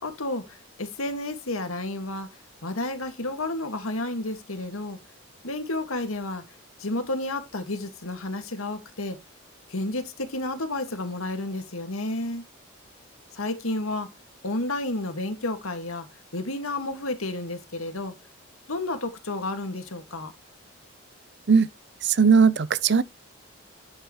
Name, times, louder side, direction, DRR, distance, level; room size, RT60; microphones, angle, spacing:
voice 1, 0.0-2.3 2.6-5.0 5.4-6.4 6.8-9.2 9.7-12.4 13.3-14.1 14.4-16.1 16.3-18.1 18.7-20.3, left 2 dB, 85° left, 1.9 m, -31 dB
voice 2, 22.0-23.0, right 5 dB, 55° right, 0.6 m, -18 dB
11.0 x 6.5 x 3.1 m
head